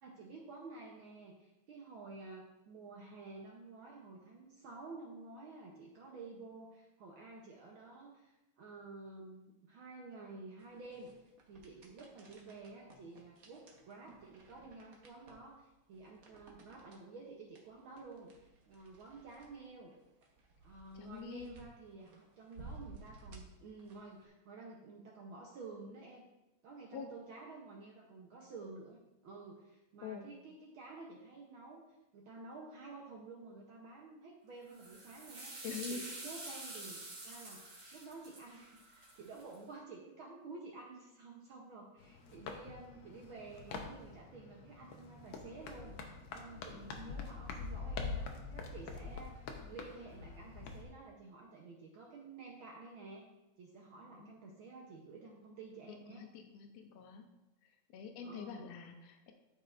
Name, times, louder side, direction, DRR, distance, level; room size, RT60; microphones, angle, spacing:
voice 1, 0.0-11.1 11.5-19.9 20.6-26.2 26.6-31.8 32.1-35.6 35.9-37.0 37.2-53.3 53.6-56.3 58.2-58.7, right 3 dB, 70° right, -1 dB, 1.2 m, -51 dB
sound 1, 10.6-24.3, right 3 dB, 85° right, 0.7 m, -57 dB
voice 2, 21.0-21.6 26.9-27.1 30.0-30.3 35.6-36.0 46.7-47.0 54.1-54.3 56.1-57.3 57.9-59.3, left 6 dB, 70° left, 5 dB, 1.9 m, -45 dB
sound 2, 34.7-39.5, right 2 dB, 45° right, 2.5 m, -48 dB
sound 3, 42.0-50.8, left 4 dB, 85° left, 1.1 m, -45 dB
13.0 x 5.4 x 2.5 m, 0.98 s
omnidirectional pair, 3.3 m